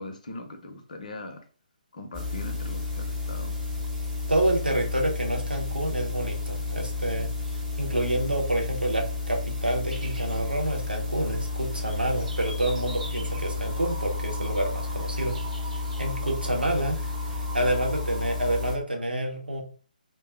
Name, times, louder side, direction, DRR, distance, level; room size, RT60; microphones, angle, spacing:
voice 1, 0.0-1.4 1.9-3.5, left 2 dB, 55° left, 0.6 m, -40 dB
sound 1, 2.1-18.7, left 3 dB, 5° right, 0.9 m, -32 dB
voice 2, 4.3-15.4 16.0-19.6, right 1 dB, 85° right, 0.8 m, -28 dB
sound 2, 9.9-17.8, right 1 dB, 60° right, 0.8 m, -48 dB
2.2 x 2.0 x 3.6 m
figure-of-eight pair, 140°, 5 cm